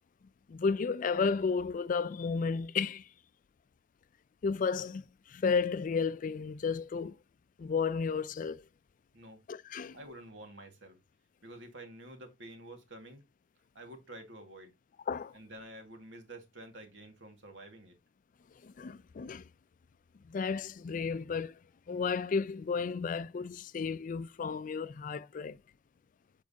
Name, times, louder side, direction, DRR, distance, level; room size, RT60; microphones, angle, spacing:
voice 1, 0.5-3.1 4.4-7.2 7.6-8.6 9.5-10.0 15.1-15.3 18.6-19.5 20.2-21.6 21.9-25.6, left 5 dB, 45° left, 0.4 m, -33 dB
voice 2, 9.9-11.0 11.4-13.2 13.7-14.7 15.3-18.0, right 1 dB, 90° right, 2.0 m, -49 dB
7.4 x 4.6 x 2.8 m
head